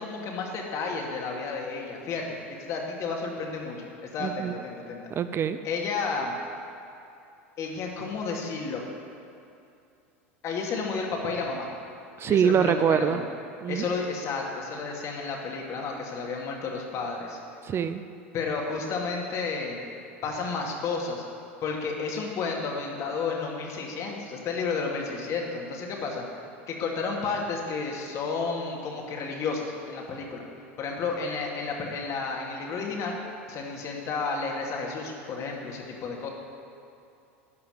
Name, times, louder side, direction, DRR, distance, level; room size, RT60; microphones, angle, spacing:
voice 1, 0.0-5.0 5.6-6.3 7.6-8.8 10.4-11.7 12.2-13.2 13.7-17.4 18.3-19.9 20.2-21.2 21.6-26.2 26.7-30.4 30.8-33.2 33.5-36.3, left 4 dB, 45° left, 0 dB, 2.5 m, -32 dB
voice 2, 4.2-4.5 5.2-5.6 12.2-13.2 13.6-13.9 17.6-18.0, right 8 dB, 35° right, 11 dB, 0.5 m, -24 dB
13.0 x 5.7 x 9.4 m, 2.6 s
hypercardioid pair, 95°, 7 cm